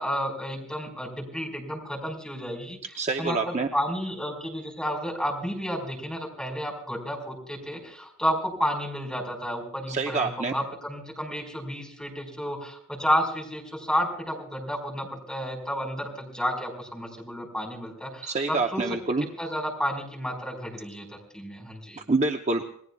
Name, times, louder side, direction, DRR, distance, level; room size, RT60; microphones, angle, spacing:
voice 1, 0.0-18.8 19.4-21.1 21.3-22.0, equal, 5° left, -2 dB, 4.8 m, -31 dB
voice 2, 3.0-3.7 9.9-10.5 18.2-19.3 22.0-22.6, right 3 dB, 30° right, 3 dB, 0.8 m, -26 dB
28.5 x 20.0 x 2.4 m, 0.67 s
head